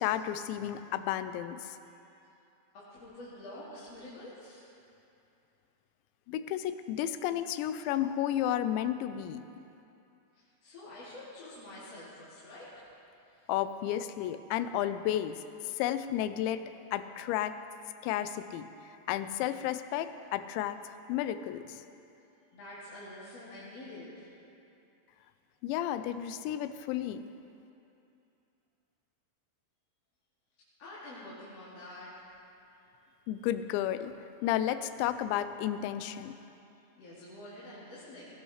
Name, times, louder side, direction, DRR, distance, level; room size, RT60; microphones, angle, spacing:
voice 1, 0.0-1.8 6.3-9.5 13.5-15.4 15.7-16.6 16.9-17.6 18.0-18.7 19.1-20.8 21.1-21.8 25.6-27.3 33.3-34.1 34.4-36.3, left 11 dB, 90° left, 11 dB, 2.9 m, -32 dB
voice 2, 2.7-4.7 10.3-12.7 22.5-24.3 30.8-32.2 37.0-38.3, left 1 dB, 40° left, -11 dB, 3.0 m, -47 dB
18.5 x 17.0 x 3.2 m, 2.7 s
omnidirectional pair, 5.1 m